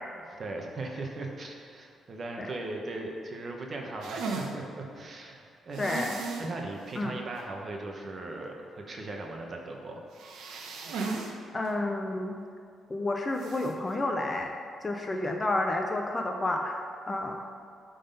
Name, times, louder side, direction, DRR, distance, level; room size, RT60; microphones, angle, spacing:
voice 1, 0.4-6.1 6.4-10.0, right 2 dB, 35° right, 1 dB, 1.1 m, -38 dB
sound 1, 4.0-4.5 5.7-6.5 6.9-7.0 7.4-7.5 10.1-11.3 11.6-11.7 13.4-13.7, right 4 dB, 80° right, 0.9 m, -35 dB
voice 2, 5.8-6.2 7.0-7.2 11.5-12.4 12.9-14.5 14.8-17.6, left 2 dB, 20° left, 3 dB, 0.5 m, -30 dB
11.5 x 3.9 x 5.4 m, 2.3 s
cardioid pair, 155°, 0 cm